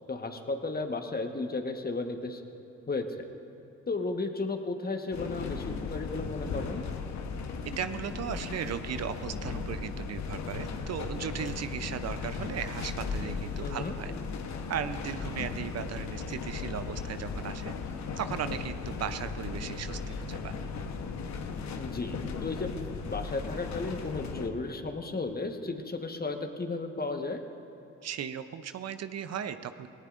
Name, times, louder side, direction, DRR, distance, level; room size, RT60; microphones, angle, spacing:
voice 1, 0.1-2.4 2.9-3.2 3.9-6.8 13.6-14.0 21.7-22.7 23.0-27.4, left 3 dB, 30° left, 5 dB, 1.3 m, -34 dB
sound 1, 5.1-24.5, left 5 dB, 65° left, 1.1 m, -36 dB
voice 2, 7.8-14.1 14.7-17.7 18.2-20.5 28.0-29.9, right 8 dB, 60° right, 11 dB, 0.7 m, -36 dB
18.5 x 18.0 x 2.6 m, 3.0 s
hypercardioid pair, 45°, 30 cm